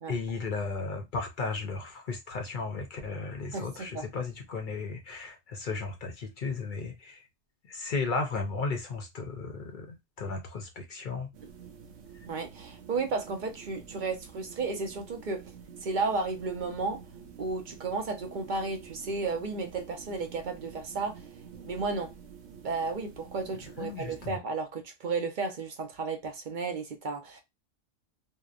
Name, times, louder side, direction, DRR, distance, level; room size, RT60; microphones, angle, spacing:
voice 1, 0.1-7.3 7.6-11.3 12.1-12.3 23.8-24.4, left 4 dB, 55° left, 0.6 m, -35 dB
voice 2, 3.5-4.0 12.3-15.4 15.8-17.0 17.4-21.3 21.6-22.1 22.6-27.4, right 4 dB, 50° right, 0.6 m, -33 dB
sound 1, 11.3-24.3, right 7 dB, 85° right, 1.0 m, -49 dB
2.7 x 2.1 x 2.3 m
omnidirectional pair, 1.2 m